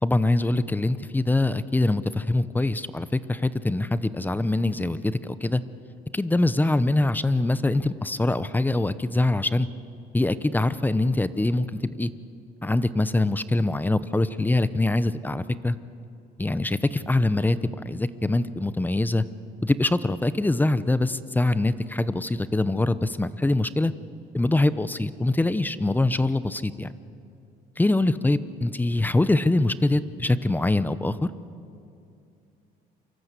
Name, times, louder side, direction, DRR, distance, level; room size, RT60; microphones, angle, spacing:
voice 1, 0.0-5.6 6.1-9.7 10.1-12.1 12.6-15.8 16.4-17.6 17.8-19.2 19.6-23.9 24.3-26.9 27.8-31.3, left 2 dB, 10° left, 14 dB, 0.8 m, -24 dB
28.5 x 24.5 x 8.3 m, 2.6 s
cardioid pair, 110°, 17 cm